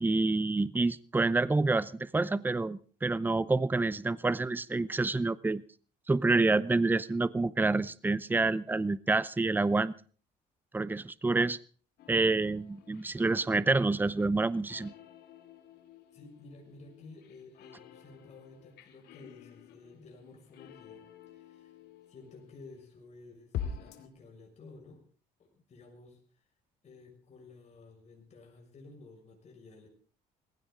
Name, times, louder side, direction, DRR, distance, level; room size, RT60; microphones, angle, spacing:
voice 1, 0.0-5.6 6.1-9.9 10.7-11.6 12.1-14.9, right 3 dB, 10° right, 17 dB, 0.7 m, -28 dB
sound 1, 12.0-22.8 23.5-24.1, left 8 dB, 80° left, 2.4 m, -47 dB
voice 2, 16.1-21.8 22.1-25.0 25.4-26.2 26.8-29.9, left 3 dB, 40° left, 1 dB, 6.1 m, -53 dB
19.0 x 16.0 x 3.8 m, 0.42 s
cardioid pair, 110°, 17 cm